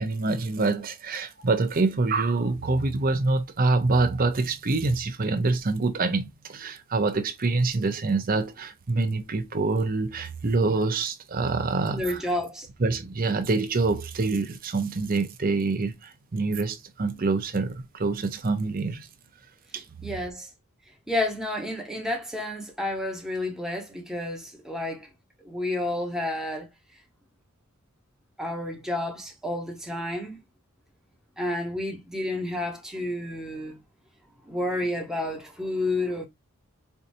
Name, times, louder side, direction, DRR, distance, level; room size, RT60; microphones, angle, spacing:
voice 1, 0.0-12.2 12.8-19.1 19.7-19.8, right 3 dB, 40° right, 0.7 m, -26 dB
voice 2, 11.9-12.7 20.0-20.5 21.1-25.1 25.4-26.7 28.4-30.4 31.4-33.8 34.5-36.3, left 1 dB, ahead, 1.0 m, -30 dB
4.6 x 2.6 x 2.6 m
head